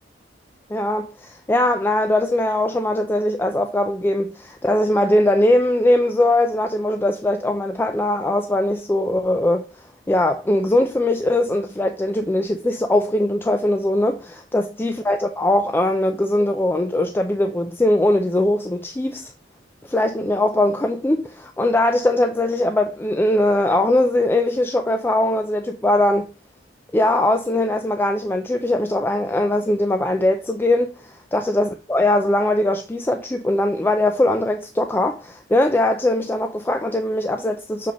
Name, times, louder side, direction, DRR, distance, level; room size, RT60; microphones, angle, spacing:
voice 1, 0.7-9.7 10.1-19.3 19.8-26.3 26.9-37.9, left 1 dB, 10° left, 0.4 m, -20 dB
6.9 x 5.0 x 3.0 m
head